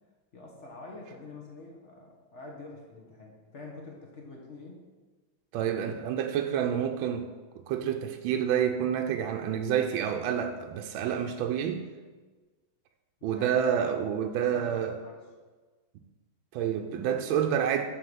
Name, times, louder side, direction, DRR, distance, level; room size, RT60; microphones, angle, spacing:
voice 1, 0.3-4.8 13.2-13.9 14.2-15.2, left 2 dB, 45° left, 1.1 m, -46 dB
voice 2, 5.5-7.3 7.7-11.8 13.2-14.9 16.5-17.8, right 9 dB, 80° right, 1.3 m, -28 dB
7.7 x 3.8 x 6.6 m
omnidirectional pair, 2.3 m